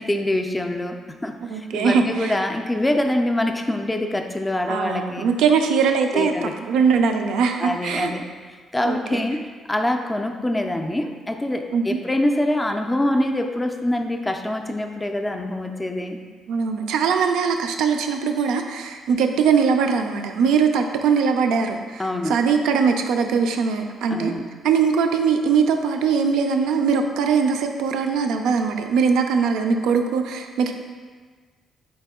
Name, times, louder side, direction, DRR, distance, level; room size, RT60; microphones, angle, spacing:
voice 1, 0.0-5.3 6.1-6.5 7.6-8.3 8.7-16.2 22.0-22.4 24.1-24.4, left 1 dB, 15° left, 4 dB, 0.3 m, -25 dB
voice 2, 1.5-2.4 4.7-8.1 8.8-9.2 11.7-12.0 16.5-24.3 24.6-30.7, right 6 dB, 90° right, 5 dB, 0.3 m, -21 dB
4.1 x 2.9 x 3.5 m, 1.5 s
cardioid pair, 90°, 0 cm